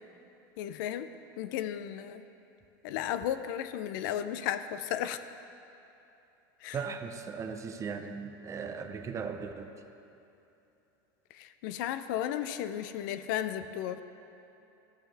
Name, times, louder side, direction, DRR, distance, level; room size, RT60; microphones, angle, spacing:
voice 1, 0.6-1.1 1.4-2.2 2.8-5.2 6.6-6.8 11.3-14.0, left 11 dB, 70° left, 11 dB, 0.4 m, -34 dB
voice 2, 6.7-9.7, right 5 dB, 25° right, 7 dB, 0.6 m, -38 dB
13.5 x 5.7 x 3.4 m, 2.9 s
supercardioid pair, 110°, 11 cm